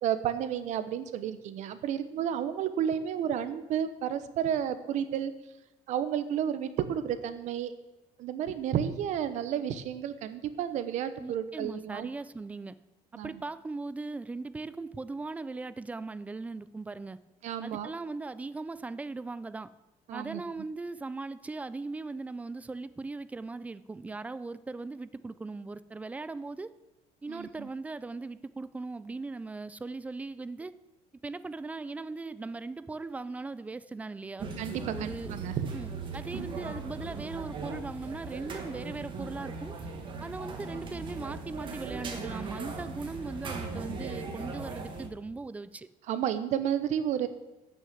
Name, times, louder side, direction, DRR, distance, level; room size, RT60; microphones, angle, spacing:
voice 1, 0.0-5.3 5.9-7.7 8.2-12.1 13.1-13.4 17.4-17.9 20.1-20.4 27.3-27.7 34.6-35.7 36.3-36.4 46.1-47.3, right 9 dB, 55° right, 12 dB, 0.9 m, -31 dB
voice 2, 11.2-12.8 13.1-17.2 17.6-19.7 20.1-26.7 27.2-30.7 31.2-34.5 34.9-35.3 35.7-39.8 40.2-45.9, right 3 dB, 10° right, 15 dB, 0.3 m, -39 dB
sound 1, 34.4-45.1, right 4 dB, 35° right, 1.6 m, -38 dB
12.5 x 6.3 x 7.8 m, 1.1 s
cardioid pair, 175°, 14 cm